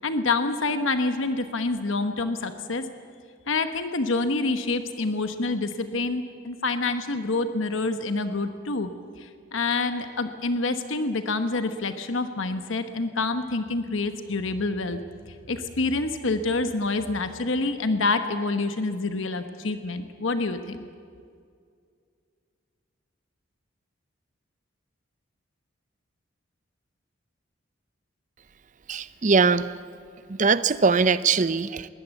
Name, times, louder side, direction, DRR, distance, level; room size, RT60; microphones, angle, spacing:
voice 1, 0.0-2.8 3.5-8.9 9.2-15.0 15.5-20.8, left 3 dB, 70° left, 9 dB, 1.1 m, -27 dB
voice 2, 28.9-29.7 30.3-31.9, right 4 dB, 35° right, 15 dB, 0.6 m, -21 dB
21.0 x 19.0 x 8.2 m, 2.3 s
head